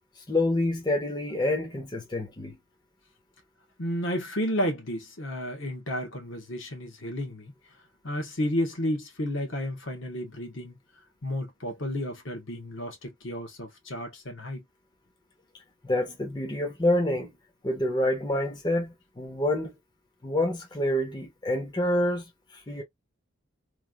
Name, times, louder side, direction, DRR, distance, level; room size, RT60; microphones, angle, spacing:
voice 1, 0.3-2.6 15.8-17.3 17.6-19.7 20.2-22.8, left 1 dB, 20° left, 0.7 m, -27 dB
voice 2, 3.8-7.5 8.0-10.8 11.2-14.6, equal, 70° left, 1.2 m, -32 dB
3.1 x 2.5 x 2.3 m
head